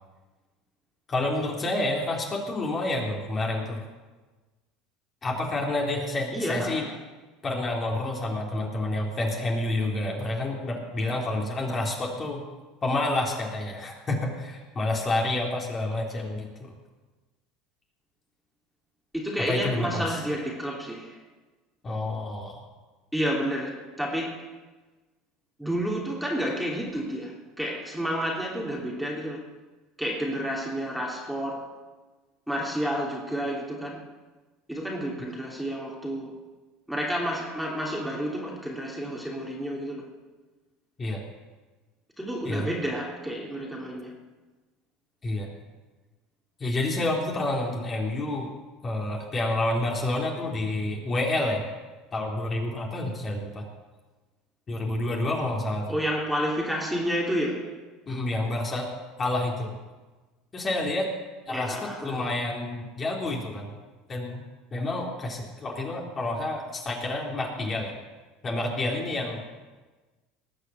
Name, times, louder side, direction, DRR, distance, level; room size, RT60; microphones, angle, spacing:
voice 1, 1.1-3.8 5.2-6.8 7.4-12.5 12.8-16.7 19.5-20.2 21.8-22.6 41.0-41.2 42.4-42.7 45.2-45.6 46.6-48.5 48.8-51.7 52.1-53.7 54.7-56.0 58.1-58.9 59.2-59.7 60.5-61.1 61.5-63.7 64.1-64.4 64.7-68.0 68.4-69.4, left 2 dB, 30° left, -1 dB, 3.4 m, -29 dB
voice 2, 6.3-6.9 19.1-21.2 23.1-24.6 25.6-29.4 30.0-31.8 32.5-34.0 34.7-36.3 36.9-40.1 42.2-44.1 55.9-57.8 61.5-62.3, equal, 5° right, -2 dB, 3.0 m, -30 dB
19.0 x 6.8 x 7.1 m, 1.3 s
hypercardioid pair, 80°, 0 cm